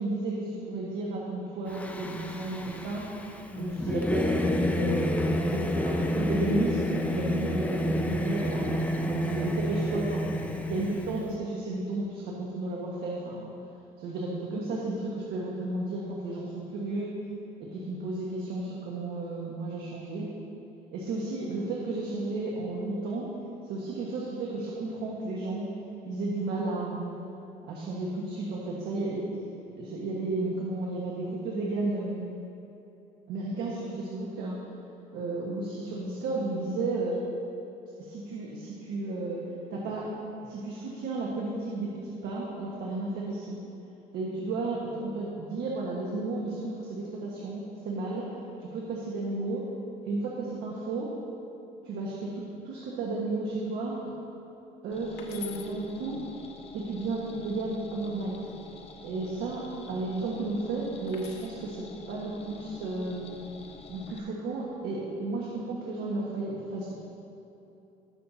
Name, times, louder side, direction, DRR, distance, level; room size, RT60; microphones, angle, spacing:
voice 1, 0.0-3.0 3.5-5.1 5.5-13.5 14.0-17.1 17.7-20.3 20.9-23.3 23.6-25.7 26.0-27.2 27.6-29.3 29.8-32.3 33.3-34.6 35.1-37.2 38.0-39.4 39.7-40.1 40.4-43.6 44.1-48.3 48.6-49.6 50.0-51.1 51.8-54.1 54.8-56.2 56.7-58.4 59.0-63.3 63.9-66.9, right 2 dB, 80° right, -4 dB, 1.5 m, -33 dB
Singing / Musical instrument, 1.7-11.3, left 1 dB, 10° left, 0.6 m, -29 dB
sound 1, 54.9-64.2, left 3 dB, 35° left, 0.9 m, -48 dB
sound 2, 55.2-55.7 57.9-58.5 61.1-61.6 62.9-63.4, left 11 dB, 75° left, 1.1 m, -46 dB
19.5 x 6.6 x 2.8 m, 2.9 s
cardioid pair, 110°, 17 cm